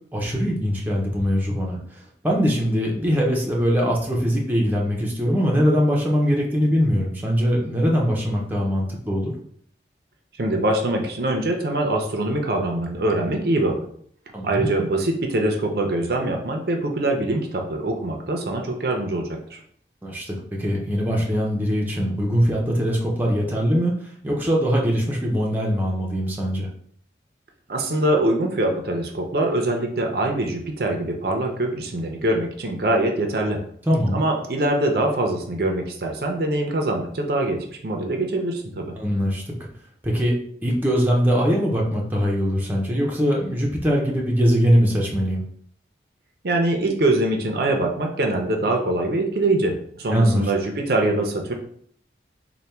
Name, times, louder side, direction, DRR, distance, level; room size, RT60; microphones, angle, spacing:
voice 1, 0.1-1.8 2.2-9.3 14.3-14.7 20.0-26.7 33.9-34.2 39.0-39.4 40.0-40.3 40.6-45.4 50.1-50.5, equal, 10° right, -2 dB, 0.6 m, -22 dB
voice 2, 10.4-13.8 14.4-19.6 27.7-33.6 34.1-39.0 46.4-51.5, right 1 dB, 60° right, 2 dB, 0.5 m, -23 dB
3.4 x 2.2 x 4.2 m, 0.62 s
head